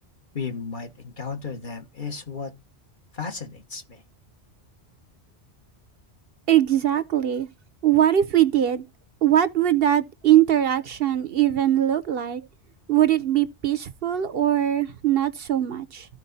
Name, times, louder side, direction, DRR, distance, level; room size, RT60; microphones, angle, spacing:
voice 1, 0.3-2.5 3.1-4.0, left 5 dB, 45° left, 1.5 m, -34 dB
voice 2, 6.5-7.5 7.8-8.8 9.2-12.4 12.9-16.1, right 11 dB, 60° right, 0.9 m, -21 dB
14.0 x 4.7 x 4.0 m
omnidirectional pair, 1.2 m